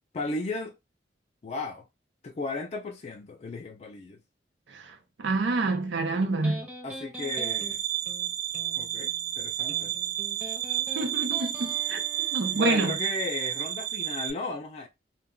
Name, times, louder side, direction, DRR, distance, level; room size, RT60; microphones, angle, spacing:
voice 1, 0.1-0.7 1.4-1.9 2.2-4.2 6.8-7.8 8.8-9.9 12.5-14.9, left 3 dB, 35° left, 0.3 m, -35 dB
voice 2, 4.7-6.6 10.9-12.0 12.3-13.0, right 3 dB, 85° right, 0.5 m, -28 dB
Electric guitar, 5.7-12.7, equal, 10° right, 0.7 m, -44 dB
sound 1, 7.2-14.3, right 11 dB, 35° right, 1.0 m, -31 dB
2.2 x 2.1 x 3.6 m
head